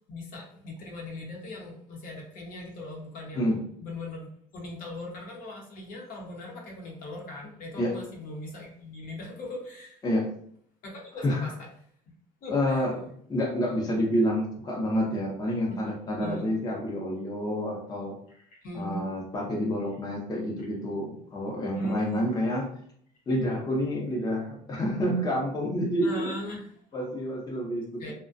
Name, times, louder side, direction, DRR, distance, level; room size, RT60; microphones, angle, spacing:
voice 1, 0.1-3.5 3.8-4.3 4.5-10.0 10.8-11.5 12.4-12.8 15.7-15.9 16.2-16.5 18.3-19.1 20.6-20.7 21.7-22.2 26.0-27.0 28.0-28.1, left 1 dB, 60° left, -1 dB, 0.8 m, -39 dB
voice 2, 12.5-13.0 13.3-18.2 18.7-22.7 23.3-26.4 26.9-28.1, equal, 25° left, -2 dB, 0.6 m, -28 dB
2.4 x 2.1 x 2.5 m, 0.63 s
cardioid pair, 120°, 16 cm